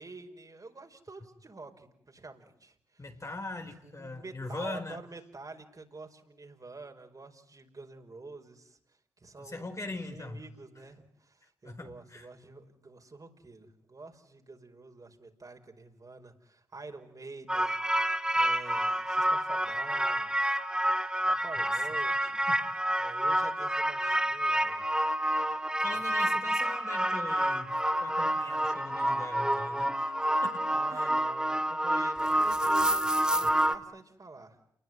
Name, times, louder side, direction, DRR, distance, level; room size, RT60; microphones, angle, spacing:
voice 1, 0.0-3.1 3.8-20.4 21.3-22.5 23.0-24.9 25.8-26.8 30.7-34.6, right 3 dB, 35° right, 4 dB, 5.2 m, -48 dB
voice 2, 3.0-5.0 9.4-10.4 11.6-12.3 21.6-21.7 22.5-22.6 25.8-30.6 30.9-31.2, left 2 dB, 30° left, 5 dB, 4.3 m, -41 dB
sound 1, 17.5-33.8, right 1 dB, 10° right, 2.1 m, -28 dB
29.0 x 20.5 x 9.7 m, 0.72 s
supercardioid pair, 45°, 10 cm